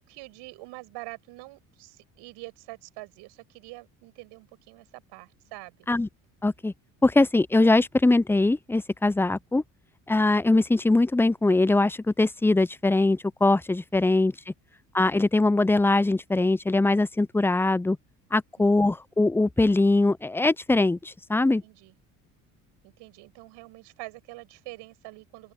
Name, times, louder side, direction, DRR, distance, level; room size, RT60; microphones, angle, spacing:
voice 1, 0.0-5.9 21.6-21.9 22.8-25.5, right 23 dB, 70° right, 7.6 m, -45 dB
voice 2, 6.4-6.7 7.0-9.6 10.1-14.3 14.9-18.0 18.3-21.6, left 2 dB, 5° left, 0.6 m, -22 dB
open air
hypercardioid pair, 65°, 42 cm